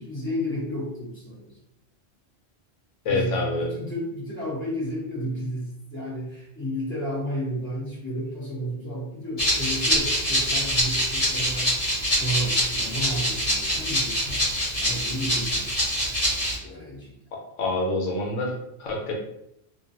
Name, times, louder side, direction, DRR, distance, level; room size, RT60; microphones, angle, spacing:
voice 1, 0.0-1.6 3.1-11.8 12.1-14.4 14.8-15.7 16.6-17.2, equal, 10° left, -8 dB, 0.9 m, -32 dB
voice 2, 3.0-3.7 17.6-19.1, left 2 dB, 90° left, 0 dB, 1.0 m, -26 dB
Rattle (instrument), 9.4-16.6, equal, 35° left, 0.9 m, -25 dB
2.5 x 2.2 x 2.7 m, 0.79 s
omnidirectional pair, 1.3 m